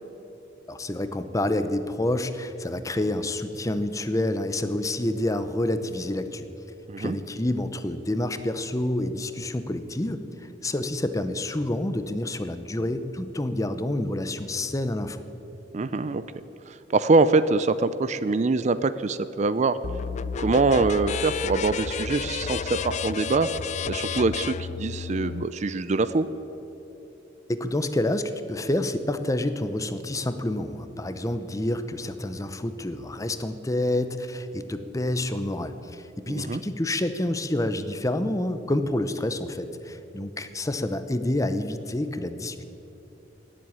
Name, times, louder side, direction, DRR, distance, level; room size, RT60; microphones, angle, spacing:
voice 1, 0.7-6.5 7.0-15.2 27.5-42.6, left 1 dB, 20° left, 10 dB, 0.7 m, -28 dB
voice 2, 15.7-16.2 16.7-19.8 20.4-23.5 23.8-26.3 36.3-36.6, right 3 dB, 40° right, 14 dB, 0.4 m, -24 dB
sound 1, 19.8-25.4, left 6 dB, 40° left, 0.3 m, -31 dB
17.5 x 7.8 x 9.7 m, 3.0 s
head